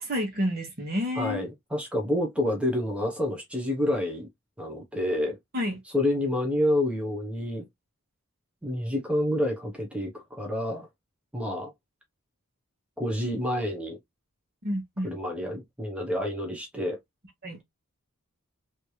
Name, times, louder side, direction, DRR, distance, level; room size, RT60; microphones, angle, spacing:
voice 1, 0.0-1.4 5.5-5.8 14.6-15.2 17.4-17.6, left 1 dB, 45° right, 1.3 m, -29 dB
voice 2, 1.1-4.3 4.6-5.4 5.8-7.7 8.6-10.9 11.3-11.7 13.0-14.0 15.0-17.0, left 1 dB, 5° right, 0.8 m, -28 dB
3.2 x 2.7 x 3.1 m
head